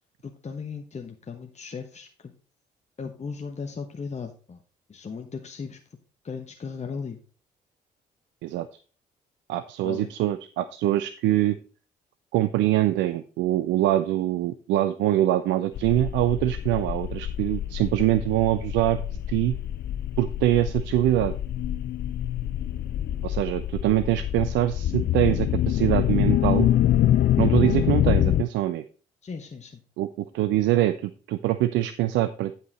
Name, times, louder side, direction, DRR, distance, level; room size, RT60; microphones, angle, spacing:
voice 1, 0.2-2.3 3.0-4.6 4.9-5.8 6.2-7.2 9.8-10.1 29.2-29.8, left 5 dB, 35° left, 5 dB, 1.1 m, -37 dB
voice 2, 9.5-11.6 12.3-19.0 19.3-19.6 20.2-21.3 23.2-26.7 27.4-28.8 30.0-30.1 30.3-32.5, right 14 dB, 70° right, 13 dB, 0.5 m, -24 dB
sound 1, 15.7-28.4, left 12 dB, 55° left, 0.5 m, -25 dB
9.6 x 5.7 x 4.1 m, 0.38 s
hypercardioid pair, 45°, 20 cm